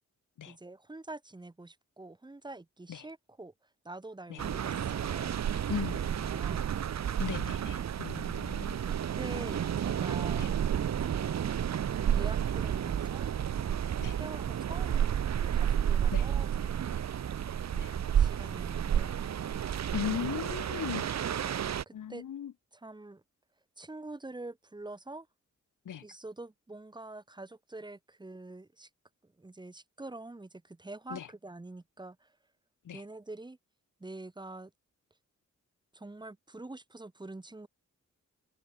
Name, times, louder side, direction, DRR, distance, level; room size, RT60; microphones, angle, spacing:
voice 1, 0.5-3.5 3.8-5.8 6.1-6.7 8.9-10.5 12.1-13.3 14.0-16.9 18.0-19.2 21.3-22.2 22.8-23.2 23.8-25.3 26.0-28.9 29.2-32.3 32.9-33.6 34.0-34.7 35.9-37.7, right 2 dB, 15° right, 3.0 m, -46 dB
sound 1, 4.4-21.8, right 9 dB, 60° right, 1.2 m, -31 dB
voice 2, 5.7-6.0 7.2-8.9 10.4-10.5 14.0-14.2 16.1-16.3 17.7-17.9 19.9-21.4 21.9-22.5 25.8-26.0 31.1-31.3 32.8-33.0, left 9 dB, 90° left, 2.7 m, -38 dB
wide cardioid pair, 175°, 30 cm